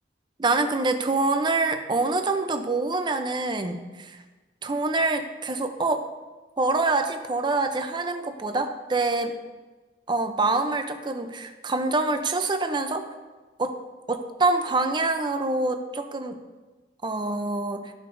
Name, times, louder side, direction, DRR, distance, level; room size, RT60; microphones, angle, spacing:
voice 1, 0.4-3.8 4.6-6.1 6.6-9.3 10.1-13.1 13.6-13.8 14.1-16.4 17.0-17.9, right 3 dB, 25° right, 7 dB, 0.5 m, -25 dB
13.0 x 5.6 x 2.6 m, 1.3 s
head